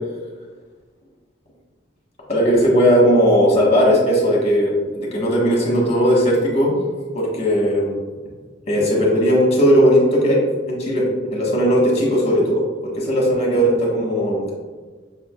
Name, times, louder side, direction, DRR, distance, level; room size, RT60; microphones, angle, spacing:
voice 1, 2.3-6.8 7.1-8.0 8.7-10.4 10.7-11.0 11.3-14.5, equal, 35° left, -3 dB, 1.4 m, -17 dB
6.0 x 3.7 x 2.4 m, 1.4 s
head